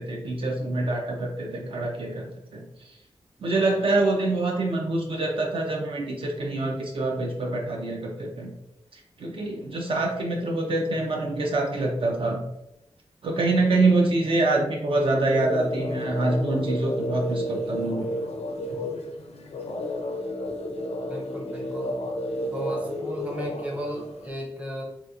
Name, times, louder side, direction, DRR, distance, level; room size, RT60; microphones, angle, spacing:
voice 1, 0.0-2.6 3.4-8.5 8.9-12.4 13.2-18.1, right 2 dB, 55° right, 0 dB, 0.4 m, -25 dB
sound 1, 15.3-24.3, left 1 dB, 80° left, 0.4 m, -32 dB
voice 2, 21.0-22.0 22.5-24.8, equal, 15° right, -2 dB, 0.6 m, -35 dB
3.3 x 2.8 x 2.3 m, 0.91 s
wide cardioid pair, 145°, 11 cm